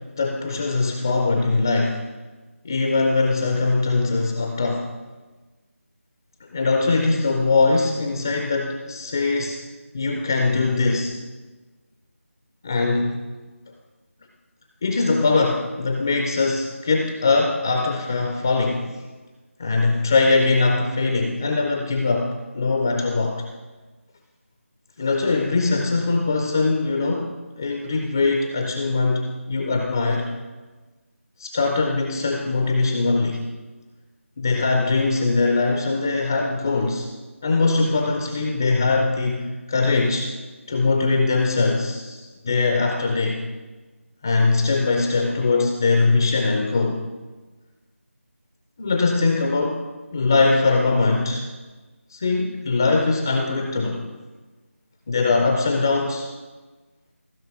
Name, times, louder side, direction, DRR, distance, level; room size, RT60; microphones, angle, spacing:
voice 1, 0.2-2.0 2.6-4.9 6.5-9.6 9.9-11.1 12.6-13.2 14.8-18.9 19.6-23.4 25.0-30.3 31.4-33.4 34.4-37.1 37.4-40.3 40.7-43.4 44.2-47.0 48.8-49.8 50.1-51.4 52.1-54.0 55.1-56.3, left 3 dB, 15° left, 2 dB, 0.4 m, -21 dB
15.0 x 5.5 x 4.7 m, 1.2 s
figure-of-eight pair, 165°, 8 cm